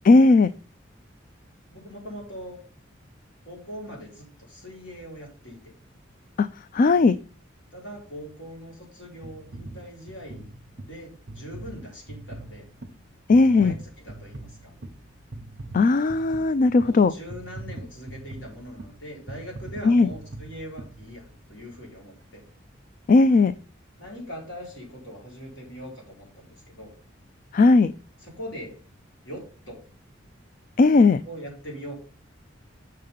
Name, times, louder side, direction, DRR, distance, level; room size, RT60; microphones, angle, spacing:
voice 1, 0.0-0.5 6.4-6.5 6.7-7.2 13.3-13.7 15.7-17.1 19.8-20.1 23.1-23.5 27.5-27.9 30.8-31.2, left 3 dB, 45° left, 14 dB, 0.3 m, -17 dB
voice 2, 1.7-2.6 3.4-5.7 7.7-10.5 10.8-12.7 13.4-14.7 16.8-22.4 24.0-26.9 28.2-28.8 29.2-29.8 31.2-31.9, equal, 65° left, -2 dB, 4.6 m, -41 dB
sound 1, 9.2-21.6 22.2-22.3, right 2 dB, 55° right, 1.0 m, -42 dB
6.6 x 6.6 x 5.5 m, 0.37 s
head